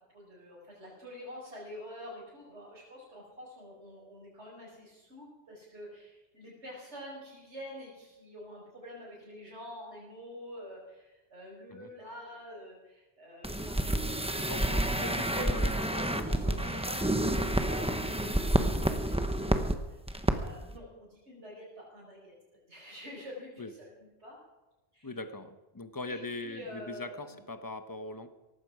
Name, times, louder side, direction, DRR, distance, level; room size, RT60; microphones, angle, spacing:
voice 1, 0.1-14.1 14.7-20.0 20.3-24.4 24.9-25.2 26.1-27.4, equal, 75° right, -7 dB, 5.1 m, -47 dB
sound 1, 13.4-19.8 20.1-20.3 20.6-20.7, right 1 dB, 5° right, 0.9 m, -29 dB
voice 2, 14.4-16.7 23.6-23.7 25.0-28.3, left 2 dB, 20° left, 9 dB, 1.0 m, -41 dB
18.0 x 15.0 x 4.9 m, 1.1 s
omnidirectional pair, 1.2 m